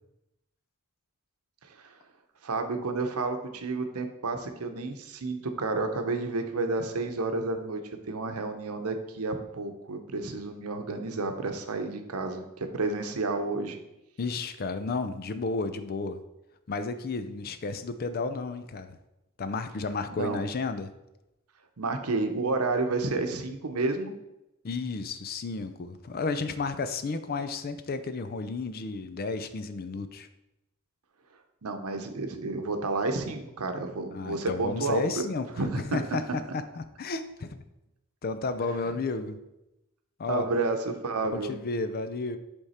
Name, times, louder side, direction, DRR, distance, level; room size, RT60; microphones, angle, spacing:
voice 1, 2.4-7.8 8.1-13.8 20.2-20.4 21.8-24.1 31.6-35.2 35.6-36.0 40.3-41.6, right 3 dB, 85° right, 6 dB, 0.8 m, -30 dB
voice 2, 14.2-16.2 16.7-19.0 19.4-20.9 24.6-30.3 34.1-35.5 35.9-37.6 38.2-39.4 40.2-40.4 41.3-42.4, left 3 dB, 45° left, 11 dB, 0.5 m, -32 dB
8.0 x 3.6 x 4.2 m, 0.92 s
head